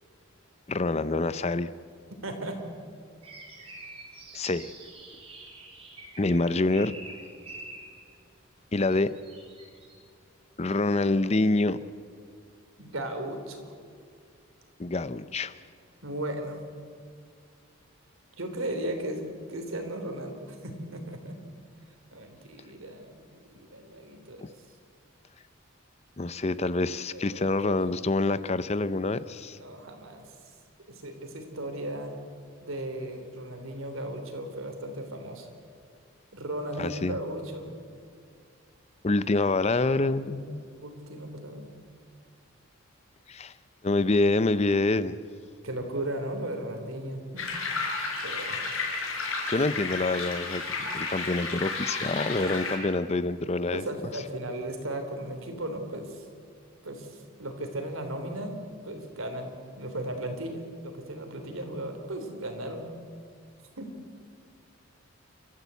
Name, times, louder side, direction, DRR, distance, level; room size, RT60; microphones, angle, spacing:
voice 1, 0.7-1.7 4.3-4.7 6.2-6.9 8.7-9.1 10.6-11.8 14.8-15.6 24.4-24.5 26.2-29.6 36.8-37.2 39.0-40.6 43.3-43.5 43.8-45.2 49.5-53.8, left 2 dB, 30° left, 15 dB, 0.5 m, -26 dB
voice 2, 2.2-2.6 12.8-13.7 16.0-16.6 18.4-21.4 22.1-23.3 23.5-24.5 27.1-27.4 29.5-30.3 30.9-32.2 32.6-35.5 36.3-37.8 40.3-40.6 40.8-41.7 45.6-47.5 48.2-48.6 53.7-56.3 56.8-58.6 58.8-62.9 63.8-63.9, right 1 dB, 80° right, 6 dB, 3.4 m, -36 dB
sound 1, 3.2-8.1 8.9-10.0, right 2 dB, 25° right, 3.6 m, -46 dB
sound 2, 47.4-52.8, left 4 dB, 80° left, 5.3 m, -32 dB
29.5 x 14.0 x 8.2 m, 2.3 s
head